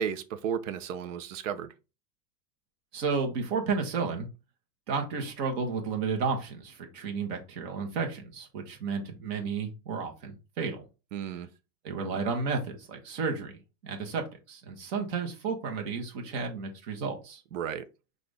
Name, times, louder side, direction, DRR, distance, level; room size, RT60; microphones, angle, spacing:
voice 1, 0.0-1.7 11.1-11.5 17.5-17.8, right 8 dB, 55° right, 0.7 m, -33 dB
voice 2, 2.9-4.3 4.9-10.8 11.8-13.5 13.8-17.4, right 5 dB, 40° right, 1.2 m, -32 dB
5.8 x 2.6 x 3.3 m
supercardioid pair, 175°, 47 cm